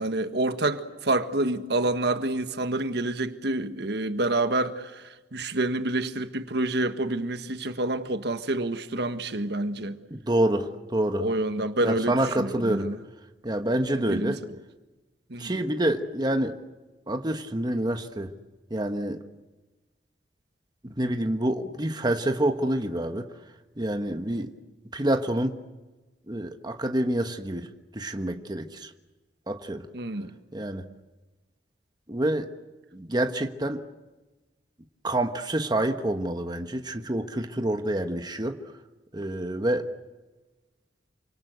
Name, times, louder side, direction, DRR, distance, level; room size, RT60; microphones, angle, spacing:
voice 1, 0.0-10.0 11.2-13.0 13.9-14.4 15.3-15.5 24.3-24.5 29.9-30.3, right 2 dB, 65° right, 1.6 m, -28 dB
voice 2, 10.1-11.2 11.8-12.9 13.4-14.4 15.4-16.6 17.1-18.3 18.7-19.2 20.8-23.3 23.8-24.5 24.9-25.6 26.3-28.9 29.5-29.9 30.5-30.9 32.1-32.5 32.9-33.8 35.0-38.6 39.1-39.9, right 1 dB, 25° right, 1.3 m, -27 dB
28.5 x 25.0 x 8.1 m
head